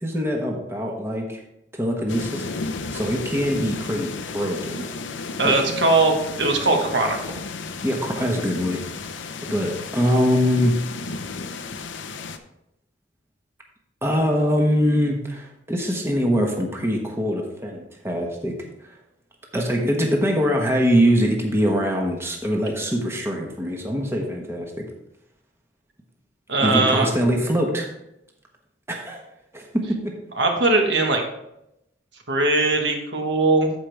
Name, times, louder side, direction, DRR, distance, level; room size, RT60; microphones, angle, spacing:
voice 1, 0.0-1.4 1.7-2.4 2.9-4.9 5.4-5.5 7.8-8.8 9.4-10.8 14.0-18.6 18.8-19.0 19.5-24.8 26.6-27.9 28.9-29.2 29.5-30.2, equal, 15° right, 1 dB, 1.1 m, -23 dB
sound 1, 2.1-12.4, left 4 dB, 80° left, 0.7 m, -33 dB
voice 2, 5.4-7.2 26.5-27.1 30.4-31.2 32.3-33.7, right 2 dB, 65° right, 2 dB, 1.4 m, -20 dB
14.0 x 5.1 x 3.4 m, 0.86 s
head